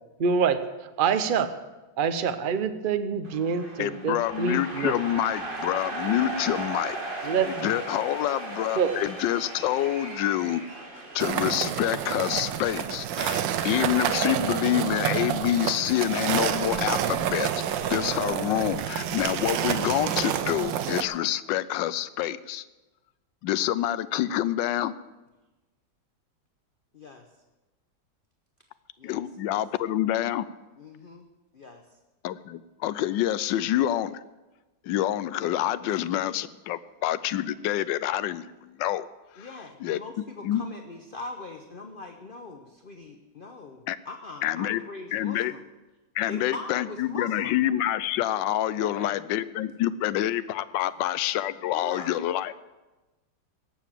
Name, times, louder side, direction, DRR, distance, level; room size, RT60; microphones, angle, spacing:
voice 1, 0.2-0.6 1.0-1.5 2.0-4.9 7.2-7.7 8.8-9.0, right 6 dB, 50° right, 9 dB, 0.6 m, -26 dB
sound 1, 3.2-14.8, right 2 dB, 30° right, 1.7 m, -38 dB
voice 2, 3.8-7.0 7.4-10.6 11.1-22.6 23.4-24.9 29.0-30.5 32.2-34.2 34.8-39.1 39.3-39.5 39.8-40.6 43.9-44.0 44.4-44.8 45.1-45.5 46.1-52.5, left 12 dB, 85° left, 16 dB, 1.3 m, -27 dB
sound 2, 11.2-21.0, right 9 dB, 85° right, 1.5 m, -28 dB
voice 3, 26.9-27.3 29.0-29.2 30.8-31.3 31.5-31.8 36.1-36.4 39.4-45.6 46.3-47.6 48.8-49.2 51.7-52.2, left 3 dB, 40° left, 5 dB, 0.8 m, -41 dB
18.0 x 7.1 x 7.3 m, 1.1 s
omnidirectional pair, 2.0 m